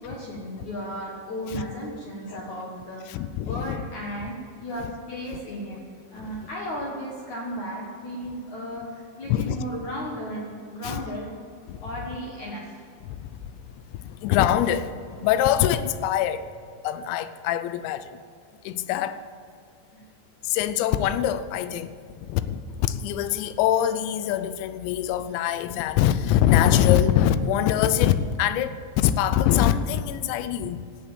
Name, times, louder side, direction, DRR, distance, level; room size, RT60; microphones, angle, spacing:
voice 1, 0.0-5.8 6.1-11.3 11.8-12.7 19.9-20.0, equal, 60° left, -2 dB, 2.0 m, -35 dB
voice 2, 3.1-3.8 6.2-6.3 9.3-9.6 10.8-11.0 11.7-11.8 14.1-14.9 15.2-16.4 16.8-18.0 18.7-19.2 20.5-21.9 22.3-30.8, left 11 dB, 85° left, 12 dB, 2.8 m, -23 dB
16.5 x 7.3 x 8.2 m, 2.4 s
omnidirectional pair, 5.3 m